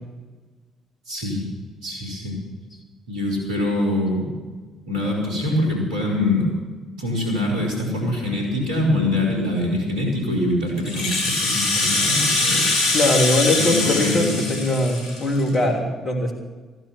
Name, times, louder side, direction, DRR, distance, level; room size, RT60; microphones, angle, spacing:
voice 1, 1.1-1.4 1.8-2.4 3.1-4.3 4.9-6.6 7.0-12.7 13.6-14.5, left 1 dB, 70° right, -2 dB, 4.3 m, -24 dB
Rattle (instrument), 10.8-15.5, left 2 dB, 60° left, 2.4 m, -23 dB
voice 2, 12.9-16.3, left 1 dB, 40° left, 1 dB, 3.2 m, -21 dB
15.0 x 11.0 x 7.2 m, 1.3 s
figure-of-eight pair, 45°, 0 cm